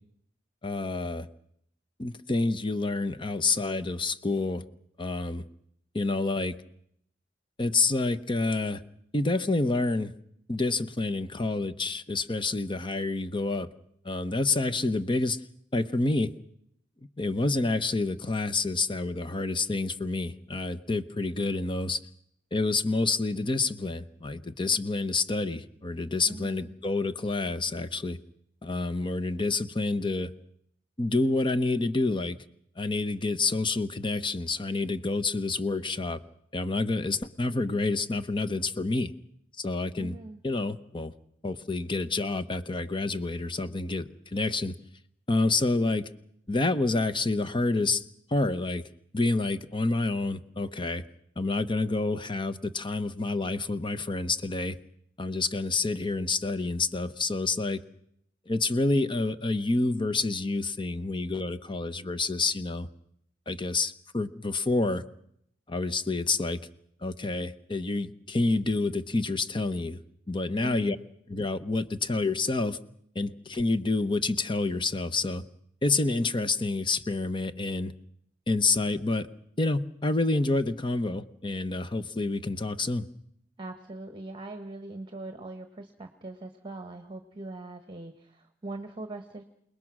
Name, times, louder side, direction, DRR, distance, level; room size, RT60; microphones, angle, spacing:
voice 1, 0.6-1.3 2.0-4.6 5.0-5.4 5.9-6.6 7.6-8.8 9.1-10.1 10.5-13.7 14.0-15.4 15.7-16.3 17.2-22.0 22.5-28.2 28.6-30.3 31.0-32.4 32.8-36.2 36.5-39.1 39.6-40.1 40.4-41.1 41.4-44.8 45.3-46.1 46.5-48.0 48.3-48.8 49.1-51.0 51.4-54.8 55.2-57.8 58.5-62.9 63.5-65.0 65.7-66.6 67.0-70.0 70.3-71.0 71.3-72.8 73.1-75.4 75.8-77.9 78.5-79.3 79.6-83.1, left 3 dB, 25° left, 12 dB, 0.9 m, -28 dB
voice 2, 26.3-26.7 40.0-40.4 70.6-71.0 83.6-89.4, right 2 dB, 25° right, 7 dB, 1.3 m, -41 dB
28.5 x 19.5 x 6.1 m, 0.72 s
head